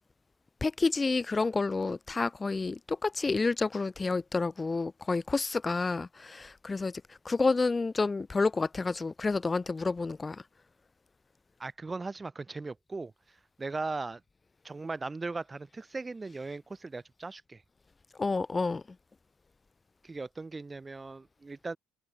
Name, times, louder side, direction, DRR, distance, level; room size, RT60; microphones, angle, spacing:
voice 1, 0.6-10.4 18.2-18.8, left 3 dB, 25° left, 1.1 m, -29 dB
voice 2, 11.6-14.2 14.6-17.6 20.0-21.8, right 3 dB, 20° right, 0.7 m, -38 dB
hypercardioid pair, 65°, 0 cm